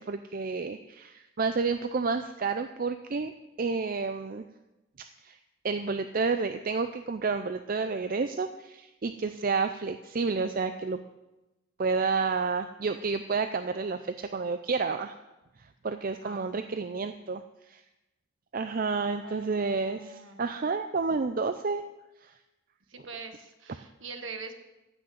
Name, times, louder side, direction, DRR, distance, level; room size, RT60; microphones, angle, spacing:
voice 1, 0.0-3.3 3.6-4.5 5.0-5.4 5.6-11.0 11.8-15.2 15.8-17.8 18.5-21.8 22.2-22.3, right 4 dB, 40° right, 9 dB, 0.4 m, -30 dB
voice 2, 16.2-16.9 19.2-20.4 22.9-24.5, right 4 dB, 65° right, 6 dB, 1.6 m, -44 dB
15.0 x 6.3 x 7.7 m, 1.0 s
head